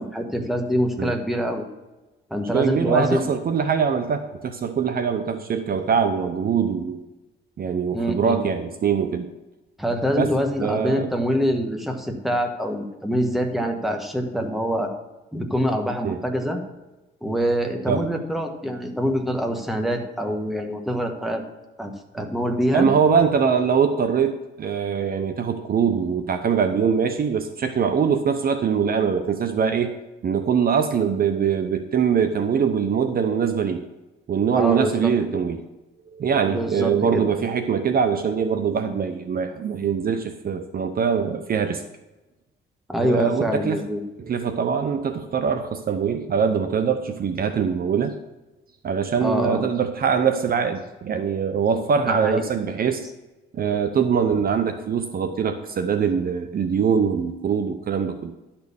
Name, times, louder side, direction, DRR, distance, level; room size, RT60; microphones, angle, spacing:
voice 1, 0.0-1.7 2.3-3.3 7.9-8.4 9.8-14.9 15.3-16.6 17.2-21.4 21.8-22.9 34.5-35.1 36.5-37.2 42.9-44.0 49.2-49.6 52.1-52.4, equal, ahead, 3 dB, 1.5 m, -25 dB
voice 2, 2.5-7.0 7.6-9.3 10.2-10.3 10.6-11.1 16.0-16.2 17.9-18.1 22.2-22.3 22.7-29.9 30.2-33.8 34.3-35.6 36.1-41.8 43.0-43.8 44.3-48.1 48.8-53.1 53.5-58.3, right 6 dB, 50° right, 8 dB, 0.7 m, -23 dB
11.5 x 4.4 x 7.1 m, 1.1 s
cardioid pair, 90°, 20 cm